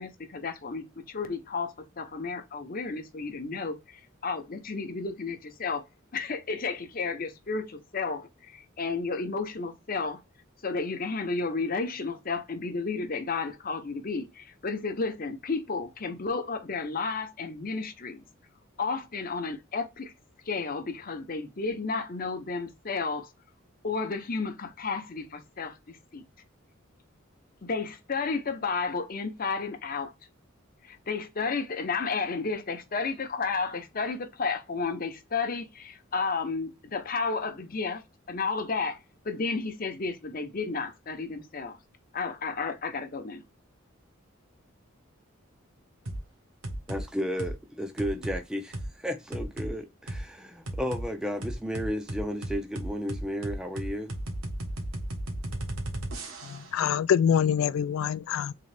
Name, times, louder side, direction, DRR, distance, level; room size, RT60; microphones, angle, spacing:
voice 1, 0.0-5.8 6.1-10.2 10.6-18.2 18.8-20.1 20.5-23.3 23.8-26.2 27.6-30.1 30.8-38.0 38.3-39.0 39.2-41.8 42.1-43.4, left 4 dB, 45° left, 0.8 m, -32 dB
sound 1, 46.1-46.2 46.6-47.0 47.4-47.6 48.0-48.4 48.7-48.9 49.3-49.7 50.1-50.2 50.7-51.1 51.4-56.7, right 1 dB, 85° right, 1.2 m, -34 dB
voice 2, 46.9-54.1, equal, 5° right, 0.4 m, -33 dB
voice 3, 56.5-58.5, left 8 dB, 80° left, 0.3 m, -25 dB
3.8 x 3.1 x 3.3 m
head